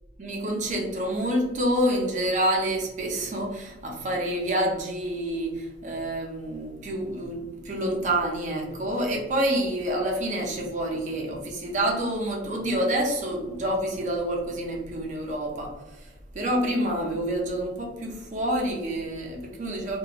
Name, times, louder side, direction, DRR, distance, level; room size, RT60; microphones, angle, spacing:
voice 1, 0.2-20.0, right 1 dB, 40° right, 0 dB, 0.5 m, -28 dB
2.9 x 2.2 x 2.4 m, 1.1 s
head